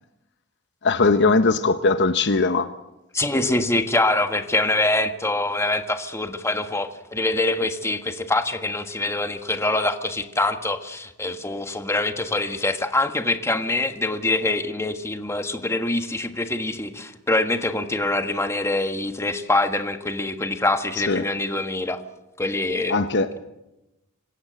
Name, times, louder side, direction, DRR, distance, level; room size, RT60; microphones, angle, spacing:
voice 1, 0.8-2.7 21.1-21.3 22.9-23.4, left 3 dB, 55° left, 0.9 m, -20 dB
voice 2, 3.1-22.0 22.4-22.9, left 2 dB, 15° left, 1.5 m, -24 dB
26.5 x 16.5 x 7.6 m
head